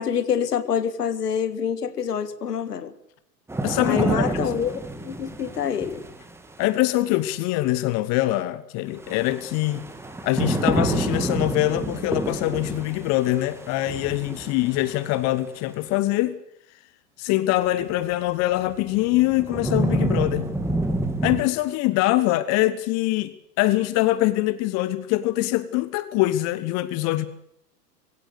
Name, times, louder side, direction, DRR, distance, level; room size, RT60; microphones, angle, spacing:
voice 1, 0.0-2.9 3.8-6.0, left 8 dB, 70° left, 1.9 m, -26 dB
sound 1, 3.5-6.6 9.0-15.3 17.9-18.0 18.6-21.4, right 2 dB, 5° right, 2.4 m, -28 dB
voice 2, 3.6-4.3 6.6-9.9 10.2-16.4 17.2-20.5 21.2-27.3, left 16 dB, 35° left, 1.1 m, -23 dB
22.5 x 16.5 x 8.0 m
figure-of-eight pair, 95°, 49 cm